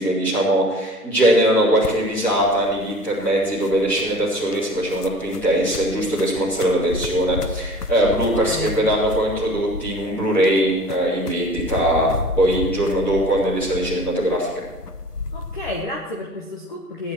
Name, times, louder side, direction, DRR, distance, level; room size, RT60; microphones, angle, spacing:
voice 1, 0.0-12.1 12.4-14.5, right 1 dB, 5° left, -10 dB, 2.9 m, -20 dB
sound 1, 1.8-15.8, left 4 dB, 80° left, 1.2 m, -33 dB
voice 2, 8.3-8.7 15.3-17.1, left 1 dB, 30° left, -1 dB, 1.3 m, -31 dB
16.0 x 10.5 x 4.6 m, 1.2 s
hypercardioid pair, 165°, 46 cm